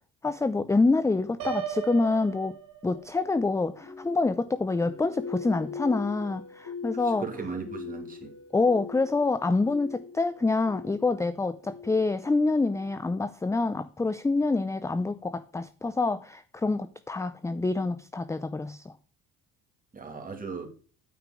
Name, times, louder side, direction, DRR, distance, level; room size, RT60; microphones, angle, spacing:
voice 1, 0.2-2.6 2.8-7.3 8.5-18.8, left 3 dB, 10° left, 0.4 m, -26 dB
Piano, 1.4-3.3, right 9 dB, 85° right, 2.9 m, -36 dB
sound 1, 3.2-13.2, left 5 dB, 80° left, 4.2 m, -42 dB
voice 2, 7.0-8.3 19.9-20.7, right 5 dB, 25° right, 2.5 m, -37 dB
9.2 x 5.2 x 5.0 m
cardioid pair, 100°, 33 cm